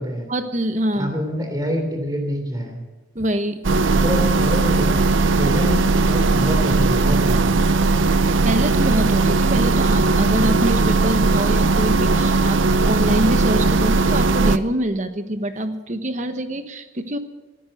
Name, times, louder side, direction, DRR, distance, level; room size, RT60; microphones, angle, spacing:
voice 1, 0.3-1.1 3.1-3.6 8.4-17.2, right 1 dB, 40° right, 9 dB, 1.1 m, -25 dB
voice 2, 0.9-2.8 3.9-7.5, equal, 20° right, 4 dB, 3.2 m, -26 dB
sound 1, 3.6-14.6, right 3 dB, 85° right, 0.7 m, -18 dB
19.0 x 10.0 x 6.6 m, 1.2 s
head